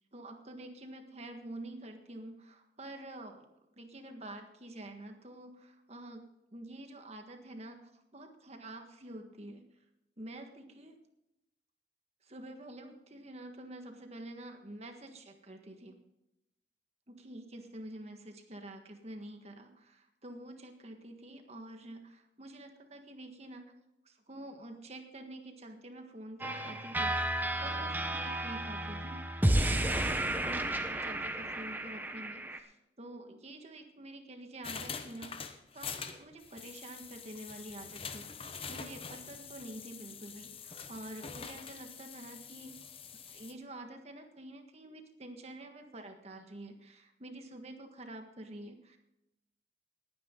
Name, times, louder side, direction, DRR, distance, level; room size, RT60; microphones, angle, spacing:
voice 1, 0.1-3.5 3.8-9.6 10.2-11.0 12.2-16.0 17.1-23.7 24.0-27.3 27.6-35.4 35.7-38.3 38.7-42.8 43.3-49.0, right 1 dB, 35° right, 5 dB, 1.6 m, -48 dB
sound 1, 26.4-32.6, right 1 dB, 10° right, 0.9 m, -32 dB
sound 2, 34.6-43.5, left 6 dB, 30° left, 0.9 m, -45 dB
18.5 x 9.5 x 3.8 m, 0.89 s
head